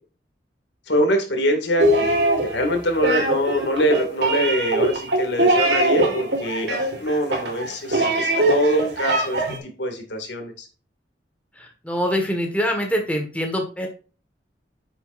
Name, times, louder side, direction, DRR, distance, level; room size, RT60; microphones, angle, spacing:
voice 1, 0.9-2.2 2.5-10.7, equal, 80° left, 4 dB, 2.2 m, -24 dB
sound 1, 1.8-9.6, right 1 dB, 75° right, 3.1 m, -21 dB
voice 2, 11.6-13.9, equal, 10° left, 3 dB, 1.6 m, -24 dB
9.4 x 7.0 x 2.6 m, 0.36 s
head